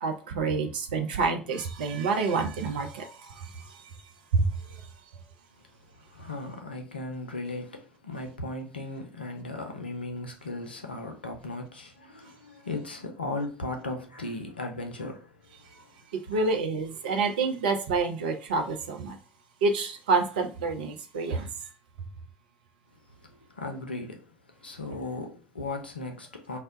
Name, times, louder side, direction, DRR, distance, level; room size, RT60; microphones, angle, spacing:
voice 1, 0.0-3.1 3.4-3.5 4.3-4.5 16.1-19.2 19.6-21.5, right 4 dB, 65° right, 0.5 m, -27 dB
voice 2, 5.9-15.9 16.3-16.5 23.1-26.6, left 2 dB, 80° left, 0.5 m, -37 dB
2.1 x 2.0 x 3.7 m
figure-of-eight pair, 65°, 5 cm